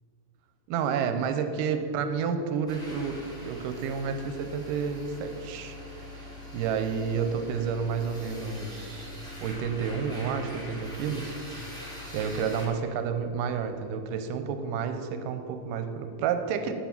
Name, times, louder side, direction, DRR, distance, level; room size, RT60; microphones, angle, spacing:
voice 1, 0.7-3.2 3.4-9.1 9.4-11.3 11.9-16.7, right 6 dB, 85° right, 8 dB, 2.2 m, -30 dB
sound 1, 2.7-12.7, left 1 dB, ahead, 1.1 m, -43 dB
8.8 x 7.1 x 5.9 m, 2.7 s
omnidirectional pair, 3.9 m